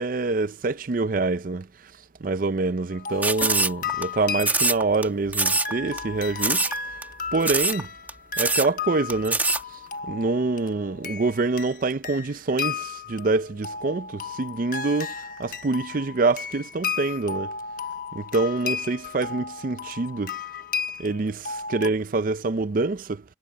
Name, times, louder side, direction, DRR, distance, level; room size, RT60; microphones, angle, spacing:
voice 1, 0.0-1.9 2.2-6.8 7.3-7.9 8.4-9.4 9.7-15.1 15.4-17.6 18.1-20.4 21.0-23.2, right 3 dB, 45° right, 0.5 m, -26 dB
sound 1, 2.9-21.9, left 6 dB, 45° left, 1.2 m, -34 dB
sound 2, 3.2-4.0 4.4-5.0 5.3-5.7 6.0-6.1 6.4-6.8 7.0-7.1 7.4-7.8 8.1-8.2 8.4-8.7 9.1-9.6, right 3 dB, 10° right, 1.8 m, -23 dB
head